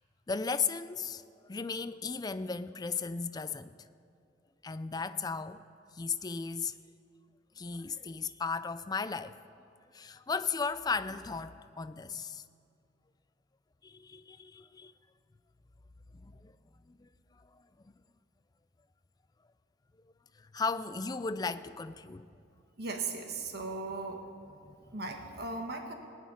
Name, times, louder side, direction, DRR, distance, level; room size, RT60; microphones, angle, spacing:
voice 1, 0.3-1.2 1.5-3.8 4.6-5.6 5.9-6.7 7.6-9.4 9.9-12.4 13.8-14.9 16.1-16.5 16.9-17.6 20.4-22.3 24.6-24.9, left 5 dB, 20° left, 13 dB, 0.4 m, -36 dB
voice 2, 22.8-24.2 24.9-25.9, right 3 dB, 55° right, 4 dB, 1.4 m, -37 dB
18.5 x 6.3 x 9.5 m, 2.4 s
head